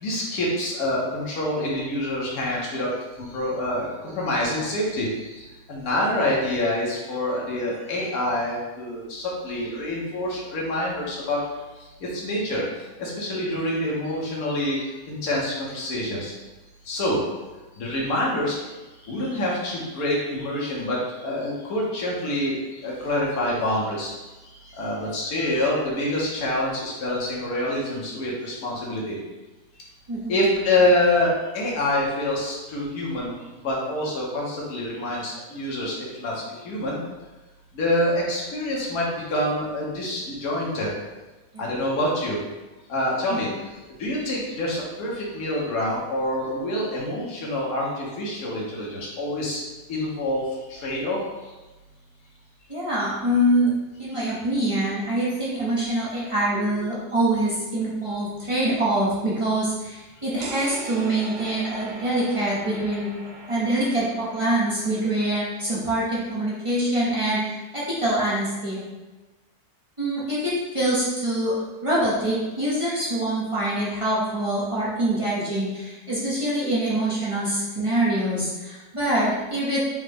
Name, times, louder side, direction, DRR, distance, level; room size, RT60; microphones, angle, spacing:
voice 1, 0.0-2.9 3.2-11.4 12.0-12.6 13.0-14.8 15.1-16.3 16.9-17.2 17.8-18.6 19.0-22.6 22.8-24.1 24.7-29.2 30.3-37.0 37.7-40.9 41.6-42.4 42.9-43.5 44.0-49.6 49.9-50.4 50.7-51.2 56.5-56.7, left 1 dB, 65° left, -4 dB, 1.3 m, -26 dB
voice 2, 52.7-63.1 63.5-68.8 70.0-71.5 71.8-79.8, right 1 dB, 25° right, -8 dB, 0.7 m, -25 dB
sound 1, 60.4-66.0, right 2 dB, 90° right, 0.5 m, -40 dB
5.0 x 2.2 x 3.4 m, 1.1 s
omnidirectional pair, 1.7 m